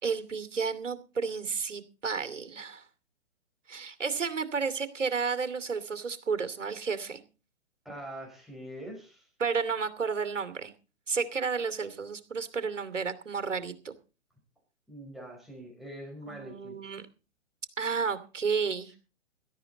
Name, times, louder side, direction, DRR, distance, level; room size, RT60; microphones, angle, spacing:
voice 1, 0.0-2.9 3.7-7.2 9.4-10.7 11.1-13.9 16.3-17.0 17.8-18.9, right 5 dB, 80° right, 11 dB, 2.7 m, -32 dB
voice 2, 7.8-9.3 14.9-16.9, right 1 dB, ahead, -1 dB, 4.6 m, -44 dB
17.5 x 12.5 x 3.9 m, 0.34 s
figure-of-eight pair, 130°, 37 cm